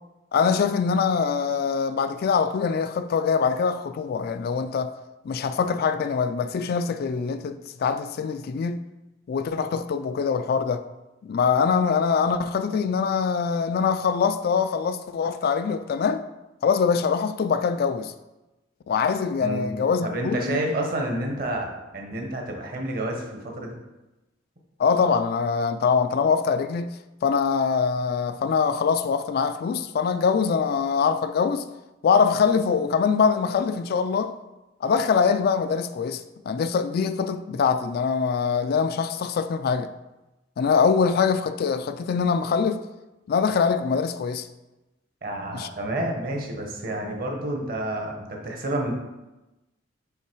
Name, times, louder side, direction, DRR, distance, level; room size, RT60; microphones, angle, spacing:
voice 1, 0.3-4.9 5.2-8.8 9.3-10.8 11.2-16.2 16.6-18.1 18.9-20.7 24.8-26.9 27.2-31.6 32.0-34.3 34.8-39.9 40.6-42.8 43.3-44.5 45.5-45.7, left 6 dB, 50° left, 0.3 m, -23 dB
voice 2, 20.0-23.8 45.2-48.9, right 1 dB, 50° right, 1.1 m, -29 dB
5.7 x 3.9 x 4.6 m
head